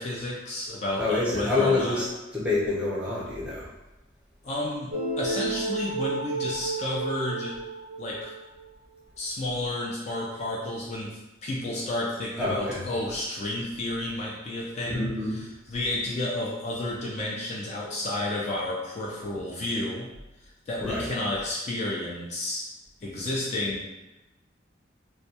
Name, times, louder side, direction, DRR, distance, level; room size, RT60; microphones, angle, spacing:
voice 1, 0.0-2.0 4.4-7.6 8.0-8.3 9.2-20.1 20.7-22.7 23.0-23.9, left 1 dB, 35° left, -4 dB, 0.3 m, -31 dB
voice 2, 1.0-2.1 2.3-3.7 12.4-12.8 14.9-15.4 20.8-21.1, left 2 dB, 5° right, -7 dB, 0.6 m, -27 dB
sound 1, 4.9-8.6, right 3 dB, 50° right, 0.4 m, -32 dB
2.2 x 2.1 x 2.7 m, 0.98 s
head